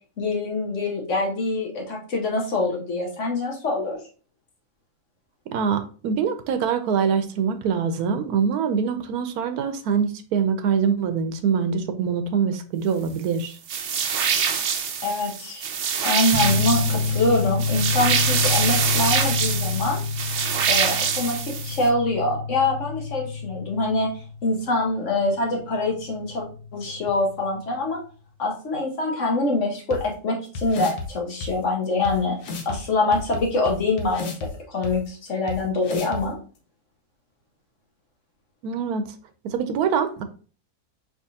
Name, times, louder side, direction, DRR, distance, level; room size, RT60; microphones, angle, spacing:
voice 1, 0.2-4.0 15.0-15.7 16.0-20.0 20.7-24.1 24.4-26.5 26.7-28.0 28.4-32.4 32.6-36.4, left 2 dB, 55° left, 0 dB, 1.3 m, -25 dB
voice 2, 5.5-13.6 38.6-39.1 39.4-40.2, right 6 dB, 80° right, 9 dB, 1.1 m, -24 dB
sound 1, 13.7-21.9, right 7 dB, 60° right, 0.8 m, -25 dB
sound 2, 16.3-27.5, left 4 dB, 25° left, 1.3 m, -28 dB
sound 3, 29.9-30.0 30.5-31.1 31.4-31.5 32.0-32.1 32.4-32.8 33.1-34.5 34.8-34.9 35.5-35.6 35.8-36.2, left 3 dB, 85° left, 1.4 m, -32 dB
4.8 x 3.5 x 2.7 m, 0.39 s
omnidirectional pair, 1.6 m